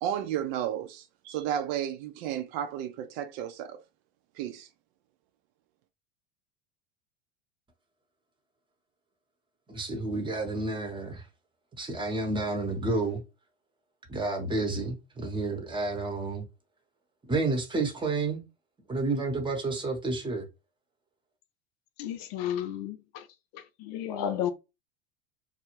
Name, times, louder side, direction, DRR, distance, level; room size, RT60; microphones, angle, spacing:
voice 1, 0.0-3.8 4.4-4.7, right 10 dB, 60° right, 0.5 m, -33 dB
voice 2, 9.7-11.3 11.8-13.2 14.1-16.5 17.3-18.4 18.9-20.5, right 3 dB, 15° right, 0.8 m, -30 dB
voice 3, 22.0-23.3 23.5-24.5, left 9 dB, 65° left, 0.5 m, -33 dB
2.3 x 2.0 x 2.9 m
hypercardioid pair, 95°, 33 cm